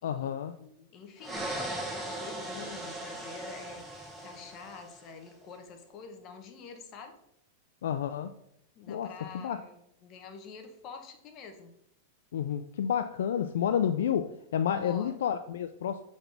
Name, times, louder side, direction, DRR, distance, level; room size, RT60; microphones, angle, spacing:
voice 1, 0.0-0.5 7.8-8.3 8.9-9.6 12.3-16.0, left 9 dB, 80° left, 9 dB, 0.3 m, -30 dB
voice 2, 0.6-7.2 8.7-11.7 14.7-15.2, left 5 dB, 40° left, 5 dB, 1.0 m, -47 dB
sound 1, 1.2-5.1, right 1 dB, 5° right, 1.1 m, -38 dB
6.9 x 4.0 x 3.4 m, 0.76 s
hypercardioid pair, 130°, 0 cm